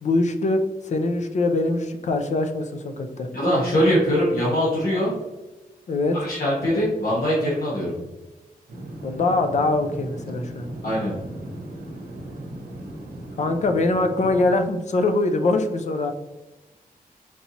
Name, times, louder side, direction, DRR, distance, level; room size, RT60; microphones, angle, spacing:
voice 1, 0.0-3.3 5.9-6.2 9.0-10.7 13.4-16.1, left 2 dB, 50° left, 6 dB, 0.4 m, -23 dB
voice 2, 3.3-5.1 6.1-7.9 10.8-11.1, equal, 85° left, -8 dB, 1.4 m, -22 dB
sound 1, 8.7-14.6, right 1 dB, 90° right, 0.7 m, -37 dB
4.5 x 2.7 x 2.8 m, 1.1 s
wide cardioid pair, 150°, 15 cm